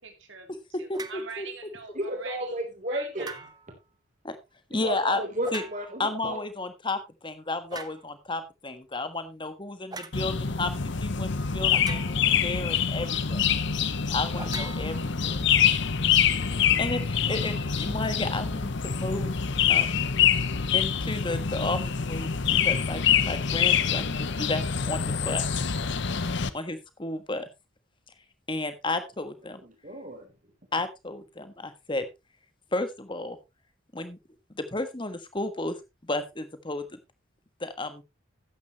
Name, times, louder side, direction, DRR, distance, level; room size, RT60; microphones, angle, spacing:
voice 1, 0.0-2.6 2.9-3.4, right 5 dB, 60° right, 6 dB, 2.5 m, -43 dB
voice 2, 0.7-1.5 4.2-4.4 4.7-5.2 5.5-5.6 6.0-13.4 14.1-15.5 16.5-19.3 19.7-20.0 20.7-25.4 26.5-27.5 28.5-29.6 30.7-32.0 32.7-33.4 33.9-34.2 34.5-35.8 36.0-37.0 37.6-38.0, left 2 dB, 25° left, 10 dB, 1.4 m, -33 dB
sound 1, 0.9-1.3 3.2-3.8 5.4-6.1 7.7-8.1 9.9-10.2 11.7-12.4 14.4-15.5, right 3 dB, 20° right, 0.8 m, -41 dB
voice 3, 1.9-3.3 4.7-6.4 29.6-30.3, right 1 dB, 40° right, 3 dB, 3.5 m, -33 dB
sound 2, 10.1-26.5, left 7 dB, 55° left, 0.8 m, -25 dB
13.0 x 9.6 x 3.0 m, 0.24 s
head